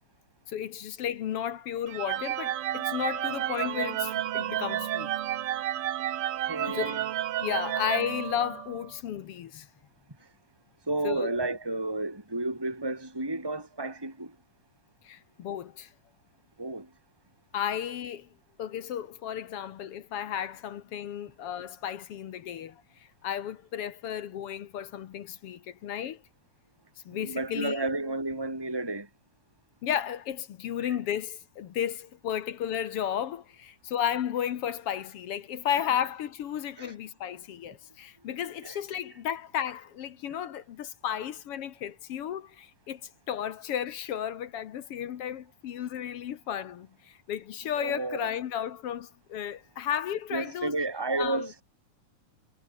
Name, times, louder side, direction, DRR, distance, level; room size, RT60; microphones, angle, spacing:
voice 1, 0.5-5.1 6.6-7.0 7.4-9.7 11.0-11.3 15.0-15.9 17.5-18.3 18.6-26.2 27.1-27.8 29.8-43.0 43.3-50.8 51.2-51.5, left 9 dB, 60° left, 1.8 m, -33 dB
sound 1, 1.9-8.9, right 12 dB, 65° right, 1.5 m, -31 dB
voice 2, 6.5-7.0 10.9-14.3 16.6-16.9 27.1-29.1 36.8-36.9 38.6-38.8 47.8-48.3 50.3-51.6, right 2 dB, 5° right, 4.5 m, -32 dB
omnidirectional pair, 3.5 m